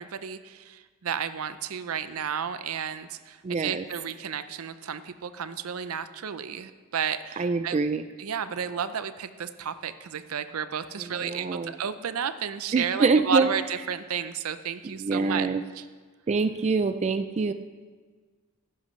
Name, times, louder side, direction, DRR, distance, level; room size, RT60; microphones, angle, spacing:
voice 1, 0.0-7.8 8.2-15.5 15.7-15.9, right 7 dB, 80° right, 12 dB, 0.5 m, -32 dB
voice 2, 3.4-3.8 7.4-8.0 11.1-11.7 12.7-13.5 15.0-15.6 16.3-17.5, right 4 dB, 30° right, 10 dB, 0.3 m, -25 dB
14.5 x 11.5 x 3.2 m, 1.5 s
head